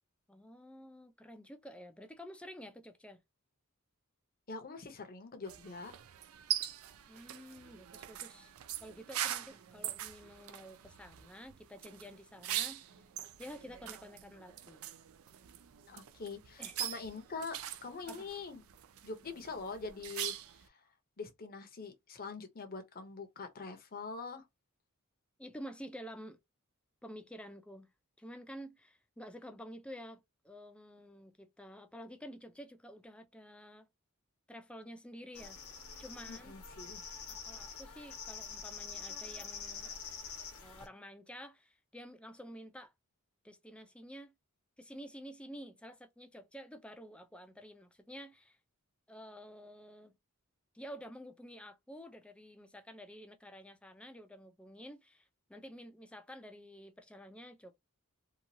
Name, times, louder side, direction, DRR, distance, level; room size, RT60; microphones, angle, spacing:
voice 1, 0.3-3.2 7.1-8.5 8.8-13.0 13.4-14.8 16.6-16.8 18.1-18.3 25.4-26.4 27.0-27.9 28.2-33.9 34.5-35.6 36.0-36.6 37.3-39.9 40.6-42.9 43.4-44.3 44.8-48.6 49.1-50.2 50.7-57.7, equal, 5° left, 0.4 m, -50 dB
voice 2, 4.5-5.9 15.9-18.6 19.0-20.3 20.7-20.8 21.2-24.4 36.3-37.0, left 4 dB, 45° left, 0.7 m, -44 dB
sound 1, 5.5-20.7, right 11 dB, 70° right, 0.4 m, -42 dB
sound 2, 35.3-40.9, left 6 dB, 75° left, 0.8 m, -46 dB
2.9 x 2.3 x 2.6 m
head